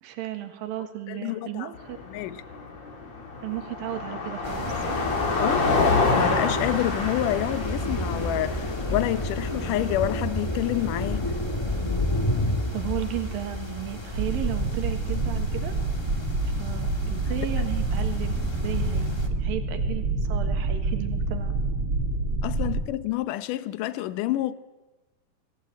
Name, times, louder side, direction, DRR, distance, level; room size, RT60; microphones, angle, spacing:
voice 1, 0.0-2.0 3.4-5.1 12.7-15.8 16.5-21.5, right 12 dB, 85° right, 3.3 m, -34 dB
voice 2, 1.1-1.7 2.1-2.4 5.4-5.7 6.1-11.3 17.3-17.4 22.4-24.5, left 14 dB, 75° left, 2.3 m, -28 dB
Car passing by, 1.8-10.0, left 3 dB, 50° left, 4.0 m, -27 dB
sound 1, 4.4-19.3, left 1 dB, 15° left, 0.9 m, -31 dB
sound 2, 14.1-22.8, right 2 dB, 35° right, 2.4 m, -27 dB
26.0 x 18.0 x 8.2 m
omnidirectional pair, 4.0 m